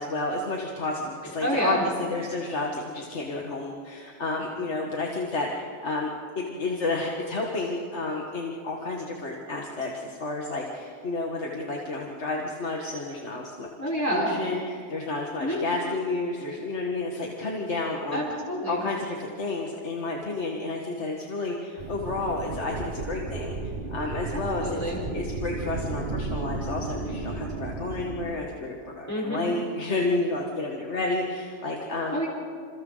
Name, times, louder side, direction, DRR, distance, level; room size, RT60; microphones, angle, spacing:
voice 1, 0.0-6.1 6.4-13.7 14.1-18.2 18.7-23.6 23.9-24.8 25.1-32.2, left 2 dB, 80° left, -1 dB, 2.0 m, -31 dB
voice 2, 1.4-1.8 13.8-14.3 15.4-15.6 18.1-18.8 24.3-25.0 29.1-29.4 32.1-32.3, equal, 15° left, -5 dB, 4.5 m, -28 dB
sound 1, 21.8-28.3, right 3 dB, 50° right, 1.8 m, -33 dB
28.5 x 28.0 x 4.0 m, 2.3 s
omnidirectional pair, 1.2 m